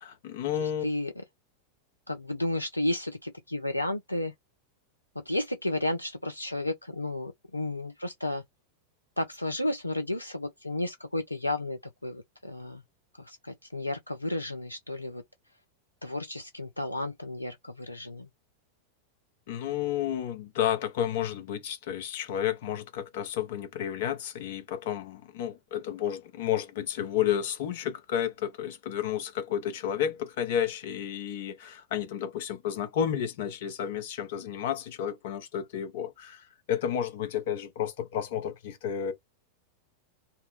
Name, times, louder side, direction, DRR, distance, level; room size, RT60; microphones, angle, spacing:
voice 1, 0.0-0.8 19.5-39.1, left 9 dB, 55° left, 0.8 m, -31 dB
voice 2, 0.6-1.1 2.1-4.3 5.3-8.4 9.2-12.8 13.2-15.2 16.0-18.3, left 1 dB, 85° left, 0.4 m, -32 dB
2.7 x 2.1 x 3.8 m
figure-of-eight pair, 90°, 0 cm